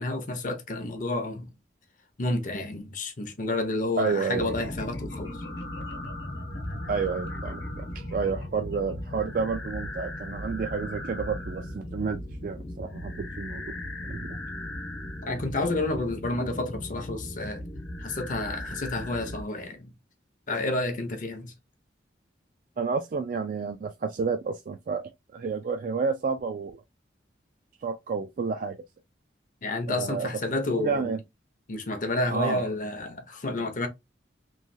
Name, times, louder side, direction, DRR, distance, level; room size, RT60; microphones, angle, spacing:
voice 1, 0.0-1.5 2.2-5.4 15.2-17.6 18.0-19.9 20.5-21.5 29.6-31.1 31.7-33.9, left 2 dB, 45° left, 0.6 m, -30 dB
voice 2, 4.0-4.7 6.9-13.6 14.1-14.4 22.8-25.0 25.3-26.8 27.8-28.8 29.9-30.3 30.7-31.2 32.3-32.7, right 5 dB, 45° right, 0.3 m, -30 dB
sound 1, 4.3-19.4, left 1 dB, 75° left, 0.9 m, -37 dB
3.0 x 2.2 x 2.6 m
head